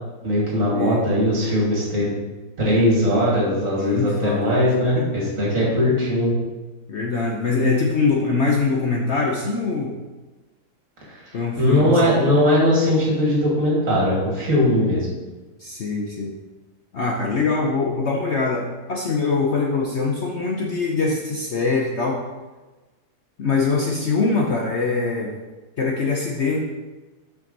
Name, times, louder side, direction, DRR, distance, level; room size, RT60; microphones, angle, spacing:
voice 1, 0.2-2.1 2.6-6.3 11.1-15.1, left 1 dB, 50° right, -5 dB, 2.7 m, -20 dB
voice 2, 3.8-4.5 5.0-5.1 6.9-10.0 11.3-12.1 15.6-16.3 16.9-22.2 23.4-25.3 25.8-26.6, left 4 dB, 55° left, -1 dB, 0.9 m, -23 dB
7.4 x 6.0 x 4.0 m, 1.2 s
omnidirectional pair, 1.8 m